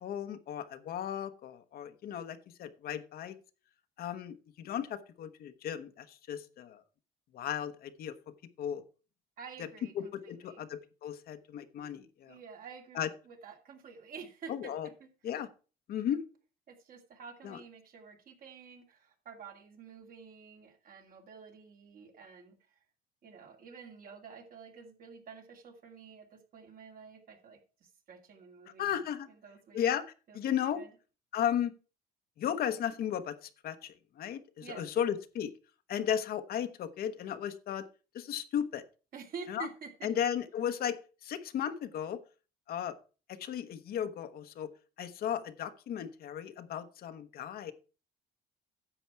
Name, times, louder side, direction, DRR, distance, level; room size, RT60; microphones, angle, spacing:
voice 1, 0.0-3.4 4.0-6.8 7.3-8.1 8.6-8.8 9.6-9.7 9.9-12.4 12.9-13.1 14.5-14.9 15.2-15.5 15.9-16.2 17.4-17.6 28.8-29.3 29.7-30.0 30.3-30.8 31.3-31.7 32.4-35.5 35.9-37.8 38.1-38.8 39.5-39.7 40.0-42.2 42.7-43.0 43.3-44.7 45.0-47.7, left 9 dB, 65° left, 9 dB, 1.0 m, -35 dB
voice 2, 9.4-10.6 12.3-13.0 13.3-15.1 16.7-22.8 23.2-29.0 29.3-29.9 30.3-30.4 30.7-30.9 34.6-35.0 39.1-40.1, right 6 dB, 55° right, 3 dB, 2.4 m, -49 dB
10.0 x 7.2 x 4.6 m, 0.34 s
cardioid pair, 110°, 17 cm